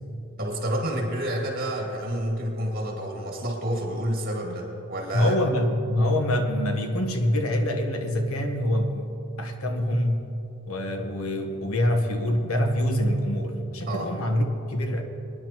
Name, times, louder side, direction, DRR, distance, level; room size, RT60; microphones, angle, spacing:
voice 1, 0.4-5.4 13.9-14.1, equal, 45° right, -1 dB, 2.5 m, -29 dB
voice 2, 5.1-9.1 9.4-10.4 10.7-15.0, left 1 dB, 80° left, 5 dB, 1.2 m, -25 dB
23.0 x 10.5 x 3.0 m, 2.8 s
head